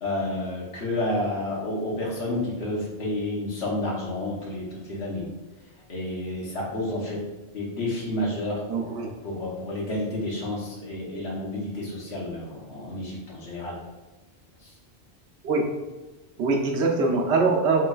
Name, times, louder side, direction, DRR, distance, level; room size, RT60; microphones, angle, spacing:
voice 1, 0.0-5.3 5.9-7.2 7.5-8.6 9.2-13.8, left 1 dB, 70° left, -4 dB, 1.2 m, -30 dB
voice 2, 8.7-9.1 15.4-15.6 16.4-17.9, right 3 dB, 85° right, 0 dB, 0.9 m, -23 dB
3.1 x 3.0 x 2.3 m, 1.2 s
omnidirectional pair, 1.1 m